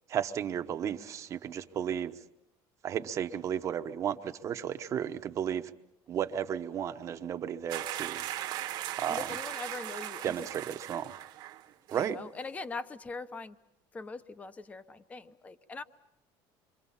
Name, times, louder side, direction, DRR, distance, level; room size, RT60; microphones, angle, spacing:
voice 1, 0.1-2.2 2.8-5.7 6.1-8.3 9.0-9.3 10.2-11.1 11.9-12.2, right 9 dB, 30° right, 8 dB, 1.0 m, -33 dB
sound 1, 7.7-11.6 11.9-12.1, right 13 dB, 45° right, 1.2 m, -38 dB
voice 2, 9.1-10.5 11.9-13.6 13.9-15.8, left 3 dB, 15° left, 12 dB, 0.8 m, -42 dB
27.5 x 24.5 x 5.7 m, 0.86 s
cardioid pair, 175°, 10 cm